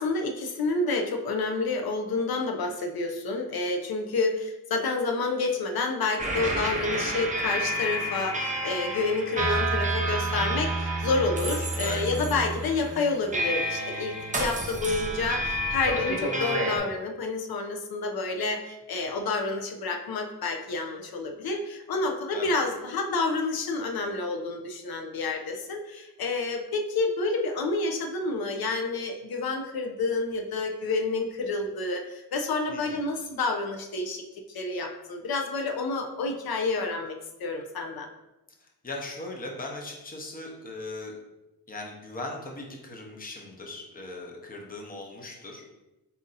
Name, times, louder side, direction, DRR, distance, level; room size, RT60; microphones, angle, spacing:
voice 1, 0.0-34.2 34.5-38.1, left 3 dB, 80° left, 3 dB, 0.6 m, -29 dB
sound 1, 6.2-16.8, right 1 dB, 20° right, 0.5 m, -29 dB
voice 2, 11.7-12.0 22.3-22.6 32.7-33.0 38.8-41.1 41.7-45.6, left 2 dB, 25° left, 1 dB, 0.6 m, -38 dB
4.2 x 2.6 x 3.9 m, 1.0 s
wide cardioid pair, 150°, 36 cm